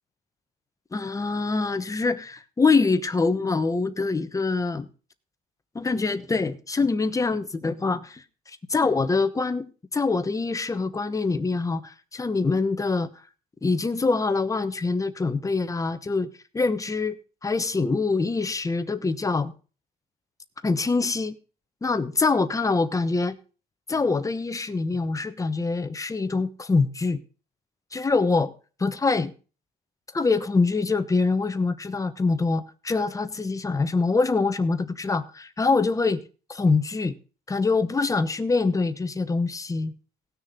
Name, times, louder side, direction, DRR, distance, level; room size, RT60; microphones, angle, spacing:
voice 1, 0.9-4.9 5.7-13.1 13.6-16.3 16.5-17.2 17.4-19.5 20.6-21.3 21.8-23.4 23.9-27.2 27.9-28.5 28.8-29.3 30.1-36.2 36.5-37.1 37.5-39.9, left 4 dB, 20° left, 1.1 m, -24 dB
18.5 x 6.5 x 3.8 m
cardioid pair, 110°, 17 cm